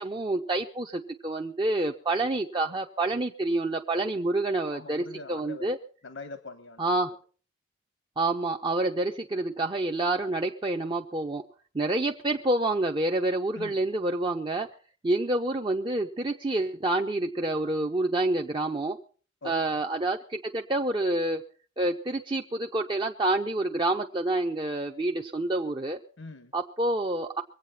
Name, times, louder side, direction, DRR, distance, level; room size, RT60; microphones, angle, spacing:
voice 1, 0.0-5.0 5.3-5.8 6.8-7.1 8.2-11.4 11.7-14.7 15.0-19.0 19.4-21.4 21.8-26.0 26.5-27.4, right 2 dB, 25° right, 2 dB, 0.6 m, -28 dB
voice 2, 4.7-5.7 6.0-7.0 13.5-13.9 19.4-19.9 26.2-26.5, left 3 dB, 75° left, 10 dB, 1.1 m, -43 dB
22.5 x 8.4 x 5.7 m, 0.42 s
head